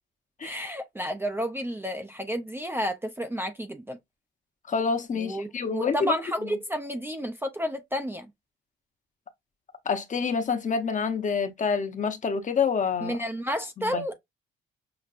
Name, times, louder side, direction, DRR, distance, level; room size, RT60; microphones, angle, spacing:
voice 1, 0.4-4.0 5.1-8.3 13.0-14.2, equal, 10° right, 0.5 m, -31 dB
voice 2, 4.7-6.1 6.4-6.5 9.9-13.2 13.8-14.0, left 5 dB, 40° left, 0.8 m, -27 dB
5.9 x 2.1 x 2.4 m
cardioid pair, 90°, 20 cm